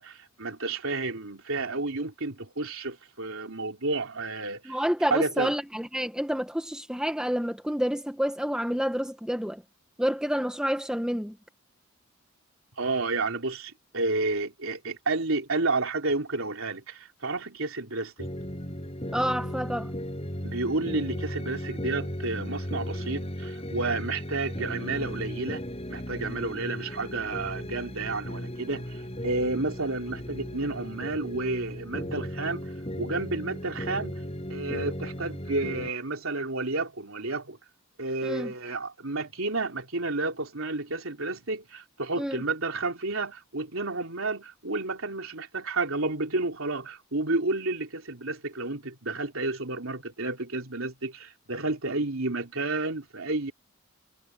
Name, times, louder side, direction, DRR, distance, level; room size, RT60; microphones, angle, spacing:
voice 1, 0.0-4.8 5.1-5.5 12.8-18.3 20.4-25.6 25.9-32.7 33.0-34.2 34.5-37.6 38.0-53.5, right 3 dB, 70° right, 3.4 m, -31 dB
voice 2, 4.6-9.6 10.0-11.4 19.1-19.9 38.2-38.5 42.2-42.4, equal, 5° right, 1.4 m, -29 dB
sound 1, 18.2-35.9, equal, 30° left, 6.7 m, -36 dB
head